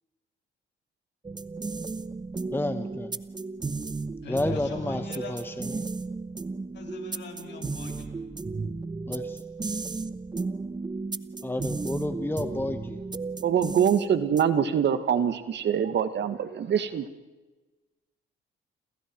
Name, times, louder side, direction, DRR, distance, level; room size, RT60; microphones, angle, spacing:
sound 1, 1.2-14.7, right 3 dB, 20° right, 1.0 m, -34 dB
voice 1, 2.5-3.1 4.3-5.9 9.1-9.4 11.4-13.0, left 2 dB, 10° left, 8 dB, 1.4 m, -31 dB
voice 2, 4.2-5.3 6.7-8.1, left 5 dB, 60° left, 3 dB, 6.7 m, -42 dB
voice 3, 13.4-17.1, right 8 dB, 65° right, 10 dB, 1.9 m, -24 dB
29.5 x 27.0 x 4.7 m, 1.2 s
cardioid pair, 90°, 20 cm